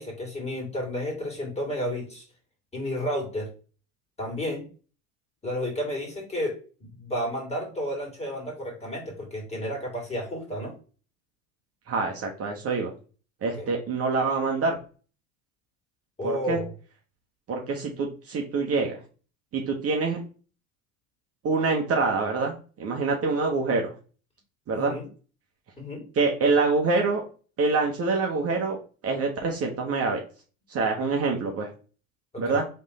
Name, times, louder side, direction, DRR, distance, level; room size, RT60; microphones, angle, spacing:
voice 1, 0.0-2.2 2.7-3.5 4.2-4.7 5.4-10.7 13.6-13.7 16.2-16.7 24.7-25.1 25.8-26.0 32.3-32.6, equal, 15° left, -1 dB, 2.4 m, -32 dB
voice 2, 11.9-12.9 13.4-14.8 16.2-16.6 17.5-19.0 19.5-20.2 21.4-23.9 24.7-24.9 26.2-27.2 27.6-28.8 29.0-30.2 30.7-31.7 32.4-32.6, right 4 dB, 30° right, 1 dB, 1.0 m, -25 dB
3.5 x 3.3 x 4.1 m, 0.37 s
hypercardioid pair, 90°, 44 cm